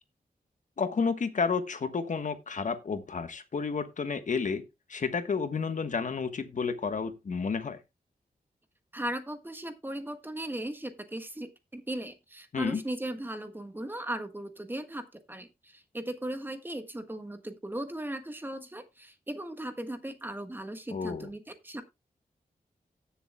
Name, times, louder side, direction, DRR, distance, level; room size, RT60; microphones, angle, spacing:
voice 1, 0.8-4.6 4.9-7.8 12.5-12.8 20.9-21.3, left 5 dB, 55° left, 1.2 m, -31 dB
voice 2, 8.9-21.8, right 1 dB, 15° right, 1.4 m, -37 dB
17.5 x 7.1 x 2.2 m
wide cardioid pair, 135°, 16 cm